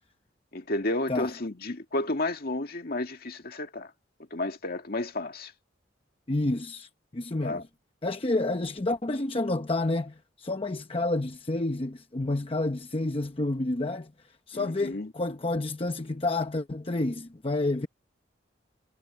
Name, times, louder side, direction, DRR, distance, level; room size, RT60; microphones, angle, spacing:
voice 1, 0.5-3.9 4.3-5.5 7.4-7.6 14.5-15.1, left 2 dB, 55° left, 2.1 m, -32 dB
voice 2, 6.3-7.6 8.0-14.1 14.5-17.9, left 2 dB, 30° left, 0.9 m, -29 dB
head